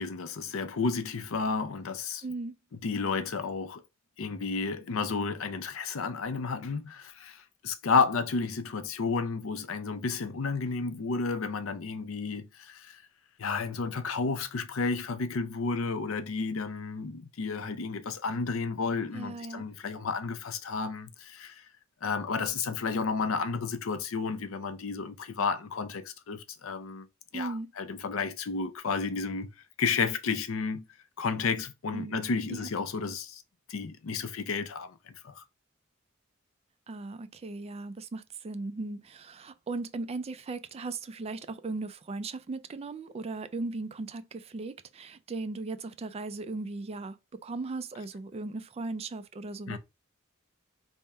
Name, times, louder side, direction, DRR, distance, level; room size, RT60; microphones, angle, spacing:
voice 1, 0.0-2.2 2.7-3.8 4.2-13.0 13.4-21.7 22.0-27.1 27.3-29.5 29.8-30.9 31.2-33.4 33.7-35.4 49.7-49.8, left 4 dB, 90° left, 0.5 m, -32 dB
voice 2, 2.2-2.5 19.1-19.6 27.3-27.7 31.9-32.2 32.5-32.7 36.9-47.2 47.4-49.8, right 3 dB, 30° right, 0.3 m, -37 dB
3.5 x 2.1 x 4.1 m
head